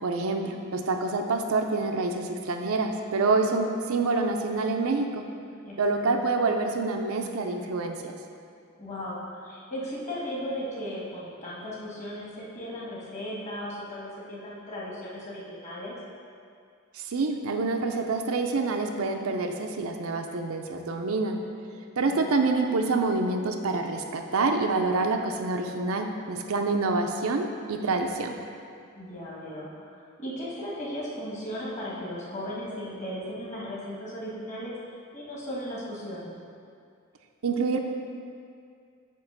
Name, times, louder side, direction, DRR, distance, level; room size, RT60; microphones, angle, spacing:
voice 1, 0.0-5.2 5.8-8.1 16.9-21.4 22.0-28.4 37.4-37.8, right 3 dB, 70° right, 4 dB, 0.5 m, -27 dB
voice 2, 5.6-6.2 8.8-15.9 22.0-22.3 28.9-34.7 35.1-36.3, equal, 30° left, -6 dB, 1.6 m, -36 dB
8.3 x 3.0 x 5.9 m, 2.3 s
head